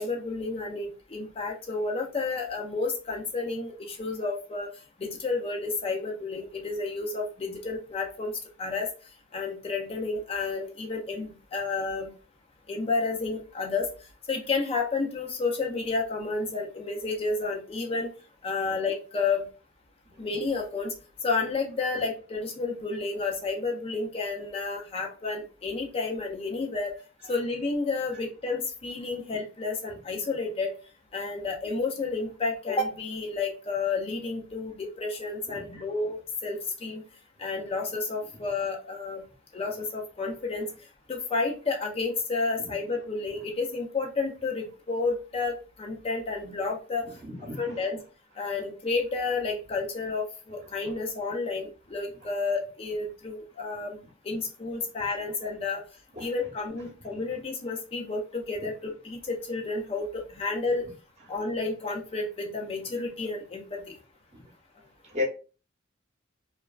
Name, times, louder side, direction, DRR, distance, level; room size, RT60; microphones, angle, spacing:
voice 1, 0.0-4.7 5.0-8.3 8.6-8.9 9.3-12.1 12.7-13.9 14.3-18.1 18.4-19.5 20.2-20.9 21.2-26.9 27.3-30.8 31.1-37.0 37.4-39.2 39.5-40.7 41.1-47.1 47.6-48.0 48.4-54.0 54.2-55.8 56.2-60.8 61.3-63.9, left 3 dB, 30° left, 1 dB, 0.4 m, -31 dB
voice 2, 47.2-47.6 56.1-56.3 64.3-64.4 65.1-65.2, left 3 dB, 35° right, -1 dB, 0.8 m, -32 dB
2.9 x 2.2 x 2.3 m, 0.34 s
head